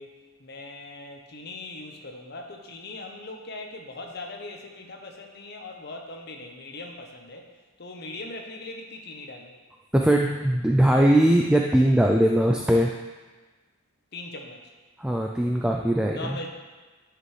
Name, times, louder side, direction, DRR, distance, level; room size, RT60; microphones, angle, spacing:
voice 1, 0.0-7.5 7.8-9.5 14.1-14.7 16.1-16.5, left 2 dB, 55° left, 2 dB, 0.9 m, -40 dB
voice 2, 9.9-12.9 15.0-16.4, right 1 dB, 5° right, 0 dB, 0.3 m, -20 dB
11.0 x 5.0 x 3.3 m, 1.3 s
head